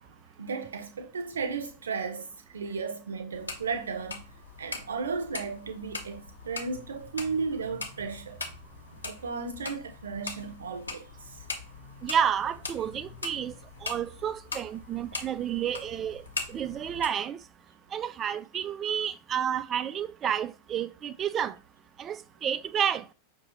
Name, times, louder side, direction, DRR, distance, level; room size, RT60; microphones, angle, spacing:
voice 1, 0.0-4.2 4.6-8.4 9.0-11.1, right 5 dB, 70° right, 0.7 m, -35 dB
sound 1, 3.3-17.1, left 3 dB, 80° left, 0.8 m, -41 dB
voice 2, 12.0-13.5 13.8-17.4 17.9-21.6 22.0-23.0, right 9 dB, 25° right, 0.3 m, -30 dB
5.9 x 2.7 x 3.0 m
figure-of-eight pair, 90°, 0 cm